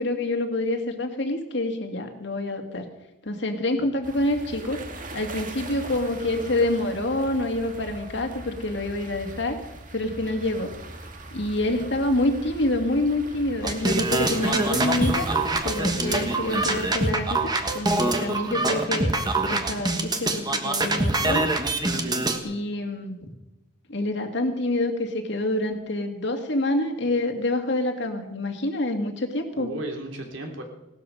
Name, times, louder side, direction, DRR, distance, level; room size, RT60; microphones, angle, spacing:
voice 1, 0.0-2.9 3.3-4.8 5.1-9.6 9.9-10.7 11.3-15.3 15.6-19.1 19.5-21.5 22.4-23.2 23.9-29.7, left 1 dB, 60° left, 4 dB, 2.2 m, -27 dB
sound 1, 4.0-17.1, right 2 dB, 40° right, 1.8 m, -40 dB
sound 2, 13.6-22.4, right 2 dB, 20° right, 1.4 m, -24 dB
voice 2, 16.0-16.3 21.9-22.4 29.5-30.6, right 1 dB, 65° right, 2 dB, 3.0 m, -36 dB
18.0 x 13.0 x 5.5 m, 0.98 s
head